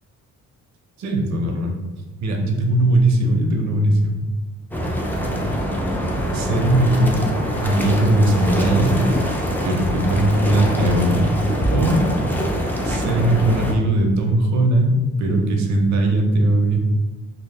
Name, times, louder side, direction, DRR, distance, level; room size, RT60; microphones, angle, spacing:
voice 1, 1.0-1.8 2.2-4.2 6.3-7.3 7.6-9.0 9.6-11.3 11.7-12.1 12.8-16.8, right 1 dB, 55° right, 2 dB, 0.5 m, -19 dB
sound 1, 4.7-13.7, equal, 5° left, 0.3 m, -24 dB
2.0 x 2.0 x 3.3 m, 1.2 s
cardioid pair, 90°, 33 cm